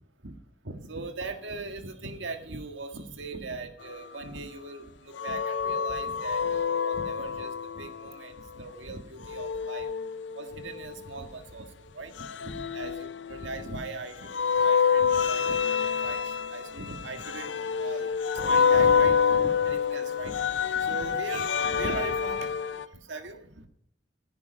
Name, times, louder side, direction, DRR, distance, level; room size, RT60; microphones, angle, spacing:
voice 1, 0.6-9.9 10.4-11.7 11.9-20.5 20.7-22.6 23.1-23.7, right 3 dB, 85° right, 6 dB, 1.7 m, -39 dB
sound 1, 5.2-8.1 9.3-11.0 12.2-13.8 14.3-22.8, left 6 dB, 70° left, 0.5 m, -27 dB
14.5 x 9.9 x 5.3 m, 0.69 s
head